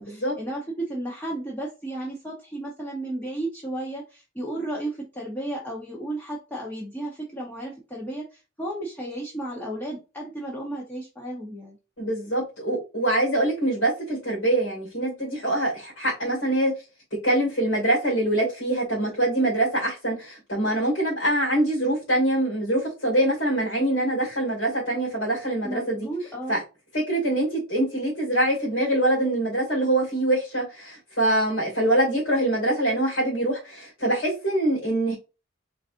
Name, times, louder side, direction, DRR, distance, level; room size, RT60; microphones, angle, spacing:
voice 1, 0.0-11.8 25.6-26.6, right 1 dB, 10° left, -4 dB, 0.9 m, -33 dB
voice 2, 12.0-16.7 17.2-26.1 26.5-26.6 26.9-35.1, right 1 dB, 65° left, -5 dB, 2.3 m, -24 dB
4.1 x 3.9 x 2.5 m, 0.30 s
head